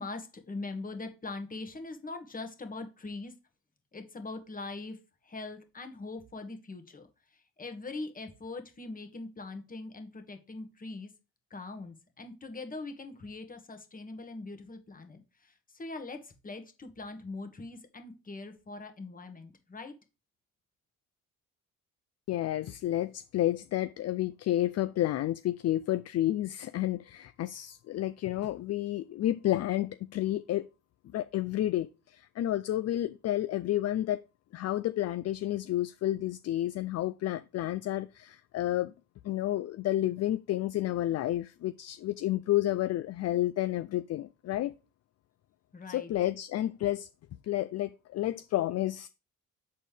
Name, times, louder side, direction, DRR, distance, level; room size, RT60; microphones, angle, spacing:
voice 1, 0.0-3.3 3.9-11.1 11.5-19.9 45.7-46.1, left 3 dB, 30° left, 1.4 m, -42 dB
voice 2, 22.3-30.7 31.1-34.2 34.5-38.9 39.2-44.7 45.9-47.1 47.4-49.1, left 14 dB, 55° left, 0.4 m, -30 dB
7.4 x 4.2 x 3.4 m
cardioid pair, 90°, 30 cm